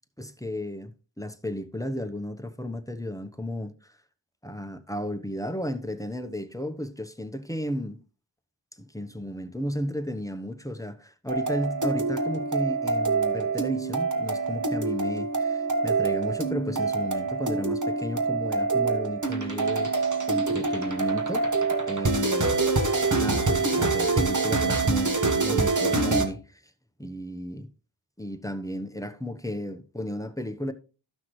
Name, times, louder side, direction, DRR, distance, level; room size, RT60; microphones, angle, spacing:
voice 1, 0.2-3.9 4.4-8.0 8.8-21.5 21.9-22.6 23.2-26.6 27.0-27.7 28.2-30.7, equal, 5° left, 0.9 m, -34 dB
sound 1, 11.3-26.3, right 3 dB, 40° right, 1.6 m, -25 dB
13.5 x 5.8 x 3.2 m
wide cardioid pair, 50°, 46 cm